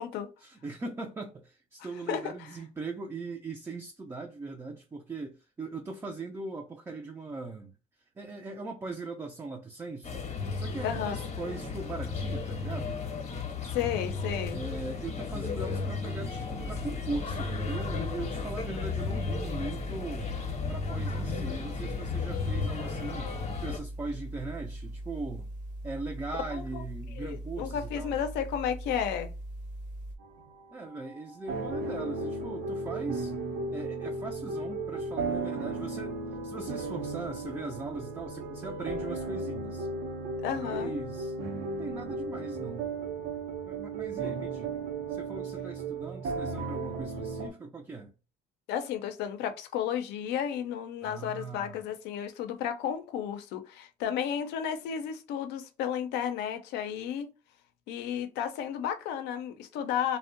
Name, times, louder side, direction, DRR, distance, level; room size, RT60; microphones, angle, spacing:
voice 1, 0.4-7.7 8.2-10.3 10.5-13.0 14.5-20.3 20.7-25.5 25.8-28.2 30.7-33.3 33.7-39.9 40.5-42.9 43.7-48.1 51.0-51.8, right 3 dB, 15° right, 0.3 m, -40 dB
sound 1, 10.0-23.8, left 4 dB, 40° left, 0.7 m, -34 dB
voice 2, 10.8-11.2 13.7-14.6 26.5-26.8 27.2-29.3 40.4-40.9 44.2-44.3 48.7-57.3 57.9-60.2, left 9 dB, 85° left, 0.5 m, -33 dB
sound 2, 16.6-30.2, right 1 dB, 50° right, 0.7 m, -40 dB
sound 3, 30.2-47.5, right 3 dB, 85° right, 0.6 m, -35 dB
2.6 x 2.1 x 2.4 m
cardioid pair, 110°, 17 cm